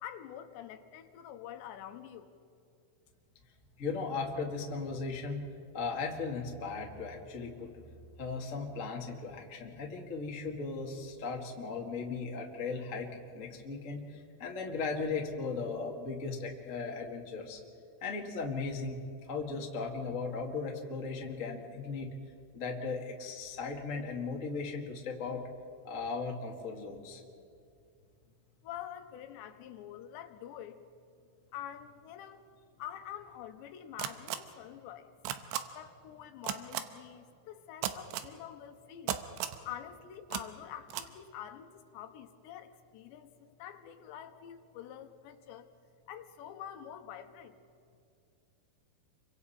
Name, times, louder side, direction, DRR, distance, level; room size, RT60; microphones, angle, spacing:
voice 1, 0.0-2.3 28.6-30.8 31.5-32.4 32.8-35.1 35.7-39.2 39.6-45.7 46.1-47.6, left 10 dB, 85° left, 8 dB, 3.2 m, -46 dB
voice 2, 3.8-5.4 5.7-7.7 8.2-17.6 18.0-19.0 19.3-22.1 22.5-25.4 25.8-27.2, left 4 dB, 45° left, 0 dB, 0.9 m, -37 dB
sound 1, 34.0-34.4 35.2-35.6 36.4-36.8 37.8-38.3 39.1-39.6 40.3-40.4 40.9-41.1, right 12 dB, 85° right, 3.0 m, -34 dB
29.5 x 24.5 x 4.3 m, 2.5 s
omnidirectional pair, 5.1 m